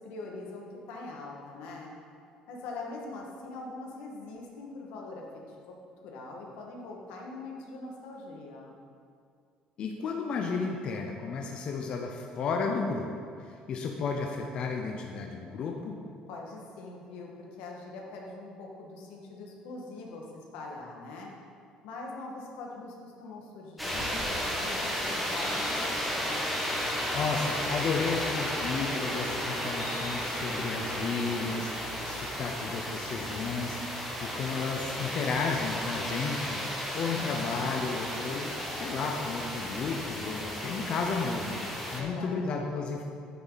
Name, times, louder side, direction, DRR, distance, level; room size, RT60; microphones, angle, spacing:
voice 1, 0.0-1.9 2.5-5.8 6.0-8.8 16.3-17.3 17.6-20.2 20.5-21.3 21.8-26.3 37.1-37.8 41.9-42.4, left 3 dB, 90° left, -1 dB, 1.8 m, -43 dB
voice 2, 9.8-13.1 13.4-16.0 27.1-43.0, left 4 dB, 40° left, 2 dB, 0.7 m, -33 dB
sound 1, 23.8-42.0, equal, ahead, 1.5 m, -33 dB
9.5 x 8.9 x 4.1 m, 2.3 s
cardioid pair, 165°, 2 cm